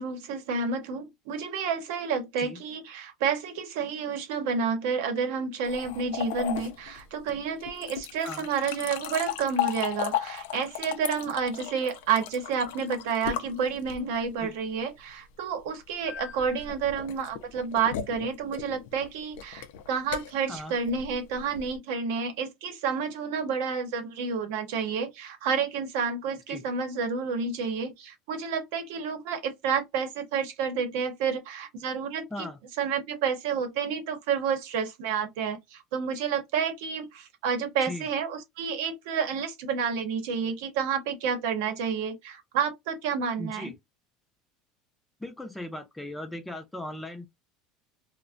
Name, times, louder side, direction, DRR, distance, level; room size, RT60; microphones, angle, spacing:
voice 1, 0.0-32.5 32.8-43.7, right 6 dB, 80° right, 0.8 m, -30 dB
sound 1, 5.7-14.3 16.1-21.8, left 10 dB, 90° left, 0.4 m, -36 dB
voice 2, 43.4-43.7 45.2-47.3, left 1 dB, 5° left, 0.4 m, -38 dB
2.4 x 2.1 x 2.4 m
cardioid pair, 150°, 0 cm